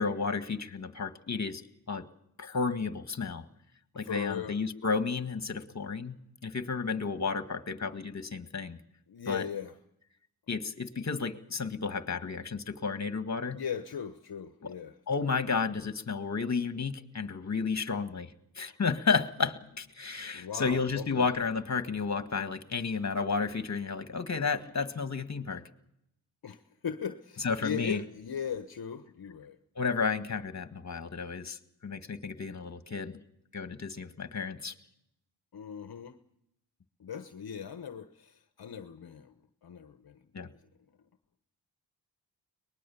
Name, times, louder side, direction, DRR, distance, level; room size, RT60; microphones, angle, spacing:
voice 1, 0.0-1.6 1.9-2.0 2.4-3.4 4.0-6.2 6.4-8.8 9.3-9.5 10.5-13.6 14.6-14.7 15.1-18.3 18.6-25.6 27.4-28.0 29.8-33.2 33.5-34.7 40.3-40.5, left 5 dB, 40° left, 10 dB, 1.8 m, -32 dB
voice 2, 3.9-4.6 9.1-9.7 13.5-15.3 20.3-21.3 26.4-29.6 35.5-36.2 37.0-39.3 39.6-40.5, left 7 dB, 55° left, 9 dB, 1.2 m, -39 dB
23.0 x 20.5 x 7.1 m, 0.79 s
supercardioid pair, 45°, 44 cm